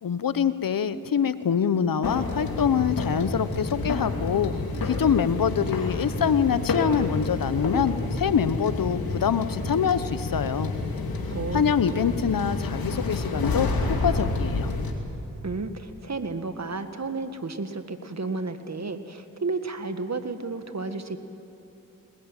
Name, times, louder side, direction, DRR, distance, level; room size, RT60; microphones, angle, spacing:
voice 1, 0.0-4.6 4.8-10.7 11.5-13.7 14.0-14.7, left 7 dB, 70° left, 14 dB, 1.0 m, -25 dB
sound 1, 2.0-14.9, left 3 dB, 85° left, 2.6 m, -29 dB
voice 2, 11.3-11.7 15.4-21.2, right 3 dB, 50° right, 9 dB, 1.8 m, -32 dB
20.5 x 20.5 x 9.0 m, 3.0 s
cardioid pair, 45°, 35 cm